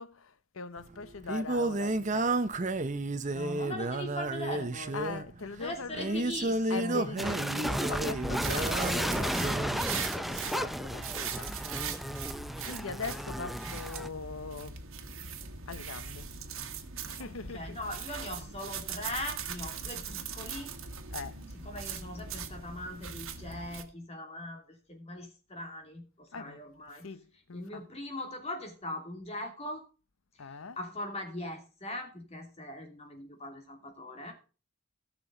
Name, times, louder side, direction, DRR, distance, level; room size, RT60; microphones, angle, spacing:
voice 1, 0.0-2.7 4.9-6.4 6.7-11.6 12.6-14.8 15.7-16.3 17.1-17.9 21.1-21.4 26.3-26.6 26.9-27.9 30.4-30.9, left 4 dB, 85° left, 0.8 m, -41 dB
Singing, 0.8-9.8, right 2 dB, 35° right, 0.7 m, -32 dB
voice 2, 3.3-5.0 5.6-7.1 17.2-20.7 21.6-27.1 27.5-29.8 30.8-34.3, left 1 dB, 30° left, 2.7 m, -40 dB
sound 1, 7.2-14.1, equal, ahead, 0.4 m, -34 dB
sound 2, 8.4-23.8, right 6 dB, 90° right, 1.6 m, -40 dB
17.5 x 6.1 x 3.8 m
head